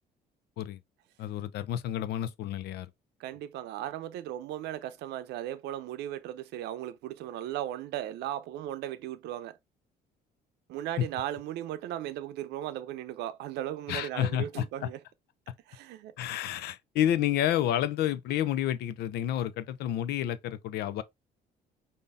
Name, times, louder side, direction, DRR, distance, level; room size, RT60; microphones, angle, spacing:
voice 1, 1.2-2.9 11.0-11.1 13.9-14.9 16.2-21.0, left 11 dB, 75° left, 0.6 m, -30 dB
voice 2, 3.2-9.6 10.7-15.0 15.7-16.1, right 12 dB, 80° right, 0.6 m, -37 dB
5.4 x 2.7 x 3.4 m
cardioid pair, 110°, 17 cm